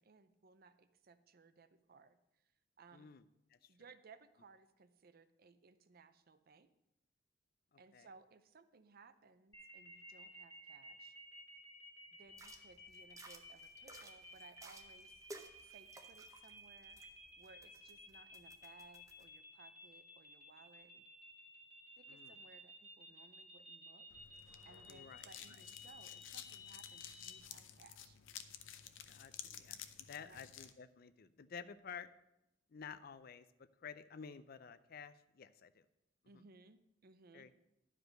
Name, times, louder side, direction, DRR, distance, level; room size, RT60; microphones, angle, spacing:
voice 1, 0.0-2.2 2.8-3.1 3.7-6.7 7.8-11.2 12.1-15.2 15.6-17.0 17.4-20.9 22.0-24.1 24.6-28.2 30.2-30.4 36.3-37.5, right 4 dB, 50° right, 12 dB, 0.6 m, -62 dB
voice 2, 2.9-3.2 3.5-3.7 7.7-8.1 22.1-22.4 24.9-25.6 29.1-32.1 32.7-35.9 36.3-36.4 37.3-37.5, left 6 dB, 50° left, 14 dB, 0.5 m, -52 dB
sound 1, 9.5-27.4, left 1 dB, 20° left, 2.1 m, -56 dB
sound 2, 12.3-19.2, right 2 dB, 15° right, 0.7 m, -58 dB
sound 3, 24.1-30.7, left 9 dB, 90° left, 0.7 m, -53 dB
11.0 x 5.0 x 6.3 m, 0.89 s
head